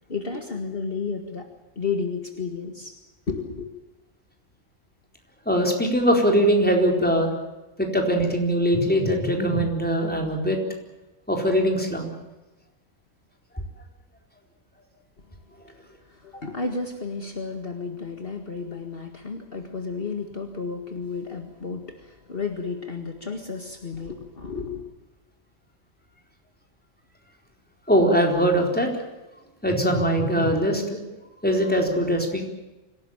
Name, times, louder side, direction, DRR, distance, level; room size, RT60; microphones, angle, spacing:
voice 1, 0.1-1.5 1.8-3.0 3.3-3.7 15.7-24.9, left 4 dB, 50° left, 4 dB, 2.1 m, -32 dB
voice 2, 5.5-7.3 7.8-10.6 11.3-12.1 27.9-28.9 29.6-31.0 31.4-32.5, equal, 5° left, 2 dB, 4.3 m, -21 dB
25.5 x 17.5 x 9.0 m, 1.1 s
omnidirectional pair, 1.3 m